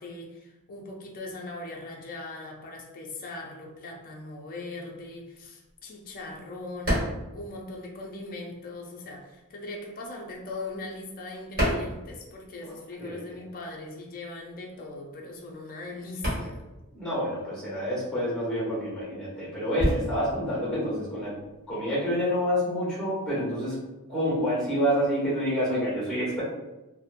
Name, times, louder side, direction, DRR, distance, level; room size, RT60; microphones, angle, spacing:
voice 1, 0.0-16.6, left 2 dB, 40° left, 0 dB, 0.4 m, -40 dB
sound 1, 5.1-8.4 8.6-12.8 13.0-21.8, equal, 40° right, 1.2 m, -33 dB
voice 2, 12.6-13.3 16.9-21.3 21.7-23.7 24.1-26.4, equal, 5° left, -7 dB, 1.1 m, -28 dB
2.8 x 2.1 x 2.4 m, 1.0 s
head